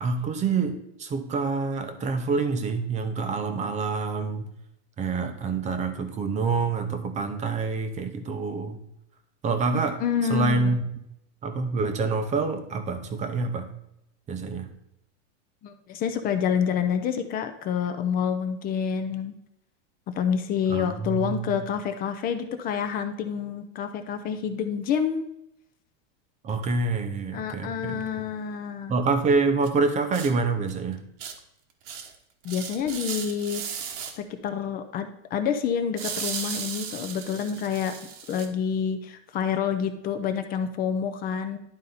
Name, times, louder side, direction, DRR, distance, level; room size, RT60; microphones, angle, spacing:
voice 1, 0.0-4.5 5.0-8.8 9.4-10.0 10.3-10.8 11.4-13.7 14.3-14.7 20.7-21.5 26.4-28.3 28.9-31.0, right 4 dB, 20° right, 7 dB, 0.7 m, -27 dB
voice 2, 9.7-10.8 15.6-19.3 20.2-25.3 27.3-28.9 32.4-33.6 34.2-37.9 38.3-41.6, left 7 dB, 25° left, 8 dB, 0.5 m, -28 dB
sound 1, 29.6-29.7 30.1-30.3 30.7-30.8 31.2-31.3 31.9-32.2 32.4-34.1 36.0-38.5, right 7 dB, 75° right, 1.3 m, -35 dB
11.0 x 4.1 x 4.0 m, 0.80 s
supercardioid pair, 150°, 37 cm